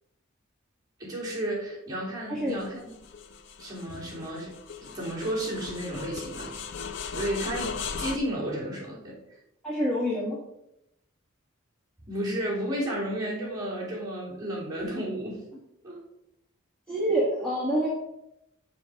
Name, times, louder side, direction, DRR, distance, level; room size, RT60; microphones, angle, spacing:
voice 1, 1.0-2.9 3.6-4.5 4.8-6.5 7.1-9.2 12.1-15.4 15.8-16.0, right 1 dB, 20° right, -6 dB, 3.2 m, -32 dB
sound 1, 2.5-8.2, left 5 dB, 60° left, 0.5 m, -38 dB
voice 2, 9.6-10.4 16.9-17.9, right 1 dB, 5° left, -6 dB, 1.4 m, -26 dB
7.1 x 4.6 x 6.3 m, 0.84 s
head